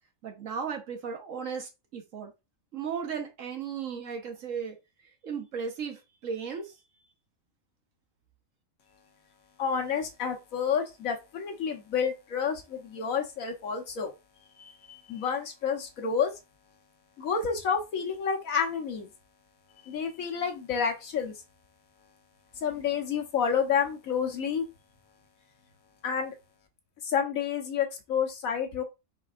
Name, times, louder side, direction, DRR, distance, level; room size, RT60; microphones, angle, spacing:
voice 1, 0.2-2.3 2.7-4.8 5.2-6.7, right 6 dB, 75° right, 1.5 m, -35 dB
voice 2, 9.6-14.1 14.6-16.3 17.2-19.1 19.8-21.4 22.6-24.6 26.0-26.3 27.0-28.8, left 7 dB, 85° left, 1.4 m, -29 dB
4.9 x 4.0 x 2.5 m
omnidirectional pair, 1.4 m